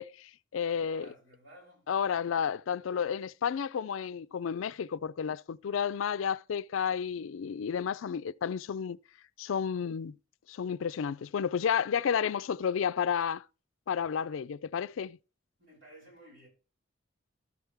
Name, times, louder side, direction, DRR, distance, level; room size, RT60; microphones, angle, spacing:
voice 1, 0.0-1.0 1.9-9.0 9.4-10.1 10.5-13.4 13.9-15.2, left 7 dB, 80° left, 0.4 m, -31 dB
voice 2, 0.8-1.9 15.6-16.5, right 2 dB, 75° right, 6.8 m, -54 dB
13.0 x 7.1 x 3.4 m
head